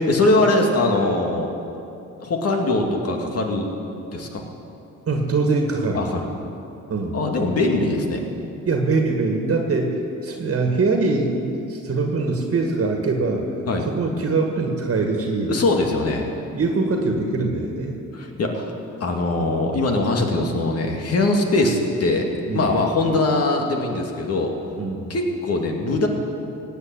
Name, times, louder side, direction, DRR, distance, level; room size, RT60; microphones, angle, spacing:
voice 1, 0.0-1.5 2.2-3.7 4.1-4.4 5.9-6.3 7.1-8.2 13.7-13.9 15.5-16.3 18.1-18.7 19.0-22.3 22.5-24.6 25.1-26.1, left 2 dB, 55° left, 2 dB, 2.4 m, -21 dB
voice 2, 5.1-6.0 6.9-7.2 8.7-13.4 13.9-15.5 16.6-18.0 22.5-22.8 24.8-25.0, right 3 dB, 50° right, 2 dB, 1.8 m, -23 dB
17.0 x 8.2 x 9.2 m, 2.8 s
cardioid pair, 90°, 30 cm